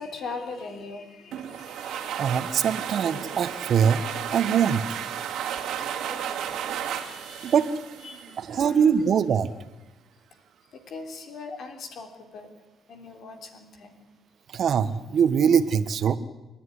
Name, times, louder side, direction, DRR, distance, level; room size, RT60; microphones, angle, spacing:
voice 1, 0.0-2.5 3.6-3.7 5.8-7.6 8.0-8.9 10.7-12.6 12.9-14.0 15.5-15.6, left 4 dB, 65° left, 5 dB, 3.4 m, -41 dB
sound 1, 1.3-8.8, right 9 dB, 85° right, 2.3 m, -33 dB
voice 2, 2.2-4.0 4.3-4.8 7.4-7.7 8.5-9.5 14.5-16.2, right 7 dB, 60° right, 12 dB, 1.4 m, -22 dB
28.0 x 11.0 x 9.8 m, 1.1 s
cardioid pair, 90°, 0 cm